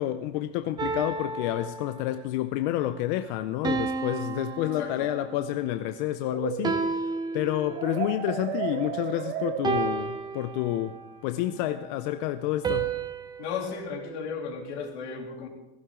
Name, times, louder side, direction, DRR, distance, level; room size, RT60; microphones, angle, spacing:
voice 1, 0.0-11.0 11.2-12.9, left 13 dB, 45° left, 0.6 m, -29 dB
sound 1, 0.8-2.3 3.6-5.5 6.6-8.1 9.6-11.1 12.6-14.9, right 5 dB, 10° right, 0.7 m, -32 dB
voice 2, 4.6-5.1 13.4-15.5, left 6 dB, 70° left, 3.0 m, -35 dB
sound 2, 6.2-10.3, right 9 dB, 70° right, 1.6 m, -34 dB
16.0 x 15.0 x 3.7 m
supercardioid pair, 155°, 34 cm